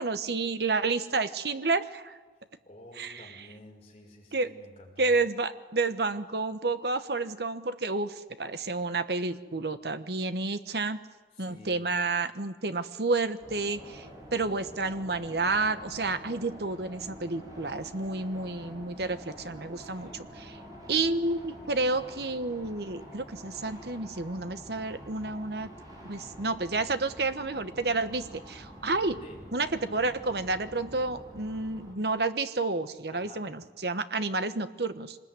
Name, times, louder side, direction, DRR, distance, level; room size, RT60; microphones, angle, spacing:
voice 1, 0.0-2.2 3.0-3.3 4.3-4.5 5.0-11.0 11.4-20.6 20.9-25.7 26.0-29.2 29.5-35.2, right 3 dB, 65° right, 11 dB, 1.2 m, -30 dB
voice 2, 2.6-5.1 11.3-11.9 19.8-20.3 29.2-29.4 33.1-33.5, left 1 dB, 35° left, -1 dB, 6.1 m, -51 dB
sound 1, 13.4-31.9, equal, 25° right, 6.4 m, -47 dB
24.5 x 20.5 x 9.6 m, 1.3 s
head